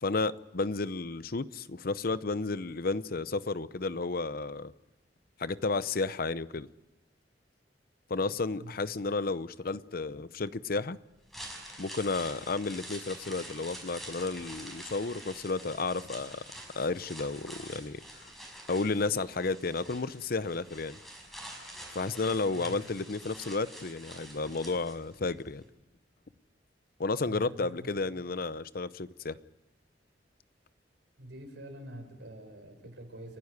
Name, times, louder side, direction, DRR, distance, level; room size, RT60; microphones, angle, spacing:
voice 1, 0.0-4.7 5.4-6.7 8.1-11.0 11.8-16.4 16.7-18.0 18.7-21.0 21.9-25.6 27.0-29.4, left 3 dB, 55° left, 0.7 m, -32 dB
sound 1, 11.1-25.3 25.6-25.7, right 1 dB, ahead, 5.4 m, -47 dB
voice 2, 22.6-22.9 27.2-27.9 31.2-33.4, right 1 dB, 85° right, 4.7 m, -45 dB
30.0 x 12.0 x 9.7 m
head